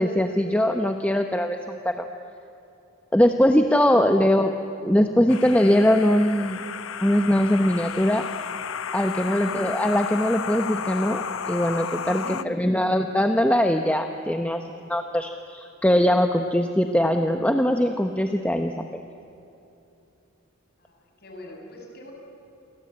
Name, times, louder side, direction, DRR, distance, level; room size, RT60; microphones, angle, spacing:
voice 1, 0.0-2.1 3.1-4.5 4.8-6.6 7.0-8.3 8.9-19.0, equal, 5° left, 5 dB, 0.8 m, -21 dB
voice 2, 4.1-4.5 12.1-12.8 20.8-22.1, equal, 50° left, 1 dB, 6.1 m, -43 dB
sound 1, 5.3-12.4, left 7 dB, 80° left, 0.8 m, -33 dB
28.5 x 23.5 x 8.7 m, 2.8 s
head